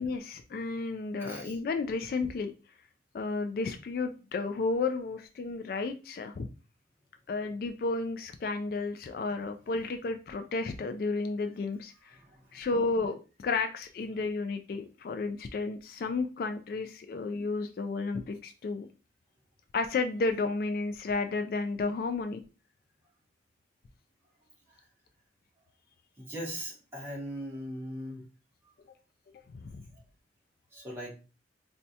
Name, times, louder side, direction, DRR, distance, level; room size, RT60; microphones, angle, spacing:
voice 1, 0.0-2.5 3.1-6.5 7.3-12.2 12.5-18.9 19.7-22.4 29.5-29.9, left 3 dB, 55° left, 7 dB, 0.3 m, -32 dB
voice 2, 1.2-1.6 12.1-12.7 24.7-24.8 26.2-28.2 30.7-31.1, equal, 15° right, -4 dB, 1.1 m, -40 dB
4.2 x 2.3 x 2.6 m, 0.33 s
head